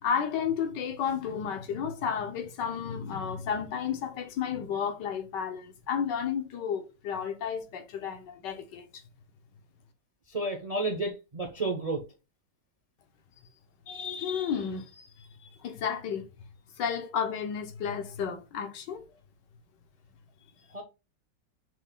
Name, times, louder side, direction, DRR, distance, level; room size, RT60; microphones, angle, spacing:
voice 1, 0.0-9.0 13.9-15.3 15.6-16.3 16.8-19.0, left 7 dB, 70° left, 1.5 m, -32 dB
voice 2, 10.3-12.0 20.7-20.8, right 2 dB, 65° right, 0.3 m, -31 dB
6.3 x 3.6 x 2.3 m
omnidirectional pair, 2.0 m